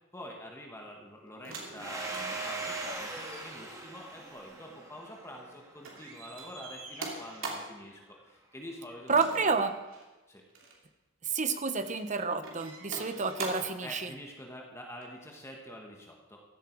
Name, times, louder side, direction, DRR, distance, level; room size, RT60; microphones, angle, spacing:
voice 1, 0.1-9.4 10.3-10.4 12.9-13.2 13.8-16.4, equal, 15° left, 0 dB, 1.7 m, -46 dB
sound 1, 1.4-5.5 5.8-7.8 9.1-10.1 10.5-10.8 11.4-12.0 12.4-13.8 15.0-15.1, right 3 dB, 70° right, 3.0 m, -44 dB
Domestic sounds home sounds, 1.8-6.2, right 2 dB, 15° right, 1.8 m, -40 dB
voice 2, 9.1-9.7 11.2-14.1, right 4 dB, 35° right, 9 dB, 1.0 m, -29 dB
15.5 x 12.5 x 4.7 m, 1.1 s
head